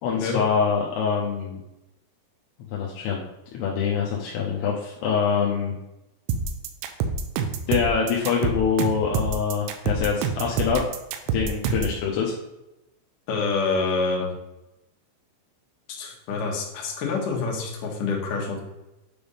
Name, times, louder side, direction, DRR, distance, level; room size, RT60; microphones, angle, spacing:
voice 1, 0.0-1.6 2.7-3.2 3.5-5.7 7.7-10.8 11.3-12.3, left 6 dB, 85° left, -3 dB, 2.3 m, -25 dB
sound 1, 6.3-12.0, right 5 dB, 80° right, 2.9 m, -27 dB
voice 2, 13.3-14.3 16.0-18.6, left 4 dB, 65° left, -2 dB, 2.1 m, -27 dB
9.1 x 3.5 x 5.5 m, 0.93 s
omnidirectional pair, 5.9 m